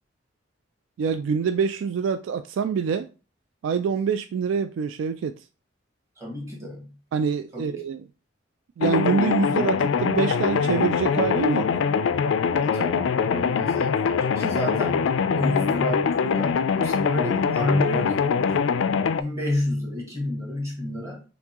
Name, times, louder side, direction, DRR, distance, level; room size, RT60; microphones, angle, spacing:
voice 1, 1.0-3.1 3.6-5.3 7.1-8.0 8.8-11.7, right 6 dB, 85° right, 0.3 m, -25 dB
voice 2, 6.2-7.0 7.5-7.8 12.6-18.7 19.2-21.2, left 1 dB, 15° right, 1.4 m, -30 dB
sound 1, 8.8-19.2, left 6 dB, 90° left, 0.3 m, -23 dB
5.8 x 2.7 x 2.9 m
head